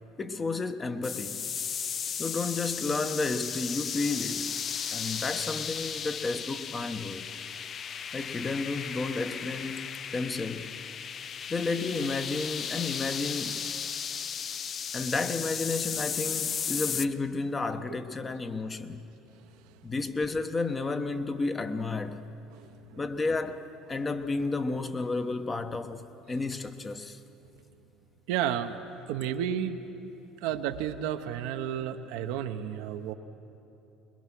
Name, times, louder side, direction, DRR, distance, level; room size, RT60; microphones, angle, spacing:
voice 1, 0.2-1.5 2.2-4.5 4.9-7.3 8.1-10.7 11.5-13.6 14.9-19.1 19.8-22.3 23.0-27.2, left 3 dB, 25° left, 1.1 m, -32 dB
sound 1, 1.0-17.1, left 7 dB, 45° left, 0.5 m, -35 dB
voice 2, 22.5-23.0 28.3-28.8 29.1-29.8 30.4-33.1, right 9 dB, 75° right, 0.9 m, -32 dB
22.0 x 21.5 x 6.1 m
hypercardioid pair, 80°, 0 cm